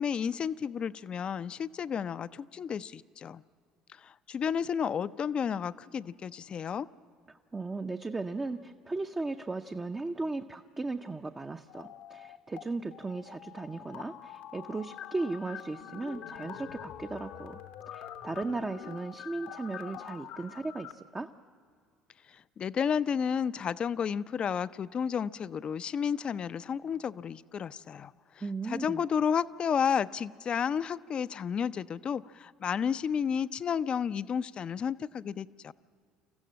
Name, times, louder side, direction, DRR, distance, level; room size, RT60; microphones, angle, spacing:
voice 1, 0.0-3.4 3.9-6.9 22.3-35.7, left 7 dB, 40° left, 16 dB, 0.5 m, -32 dB
voice 2, 7.3-17.6 17.9-21.3 28.4-29.0, right 3 dB, 20° right, 5 dB, 0.6 m, -36 dB
sound 1, 11.7-12.6 12.9-20.9, left 10 dB, 65° left, 0.9 m, -45 dB
26.0 x 15.0 x 7.5 m, 2.2 s
hypercardioid pair, 65°, 2 cm